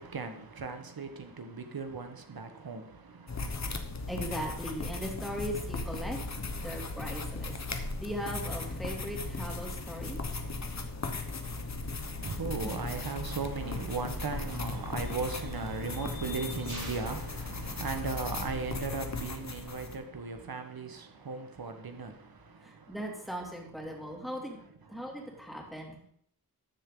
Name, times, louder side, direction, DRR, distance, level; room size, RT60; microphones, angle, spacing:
voice 1, 0.0-2.9 12.2-22.1, right 4 dB, 75° right, 6 dB, 1.3 m, -37 dB
sound 1, 3.3-20.0, left 3 dB, 45° left, 1.2 m, -37 dB
voice 2, 4.1-6.2 6.6-7.6 8.0-10.2 12.6-12.8 22.6-24.6 24.9-26.0, equal, ahead, -1 dB, 2.7 m, -38 dB
sound 2, 14.4-18.5, left 1 dB, 50° right, 4.8 m, -50 dB
13.0 x 7.3 x 3.8 m, 0.68 s
wide cardioid pair, 85°, 37 cm